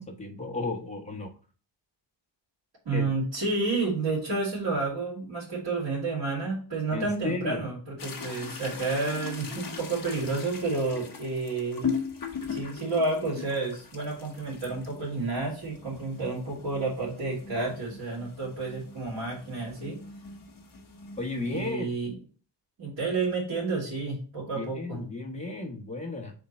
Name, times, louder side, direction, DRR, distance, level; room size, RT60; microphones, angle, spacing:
voice 1, 0.0-1.3 2.9-3.1 6.9-7.7 21.2-21.9 24.5-26.3, left 2 dB, 15° left, 0 dB, 1.3 m, -34 dB
voice 2, 2.8-11.9 12.5-20.0 21.5-22.1 22.8-25.0, right 3 dB, 80° right, -9 dB, 3.1 m, -30 dB
sound 1, 8.0-21.7, left 6 dB, 50° left, 1.1 m, -39 dB
4.6 x 3.7 x 5.5 m, 0.39 s
wide cardioid pair, 135°, 44 cm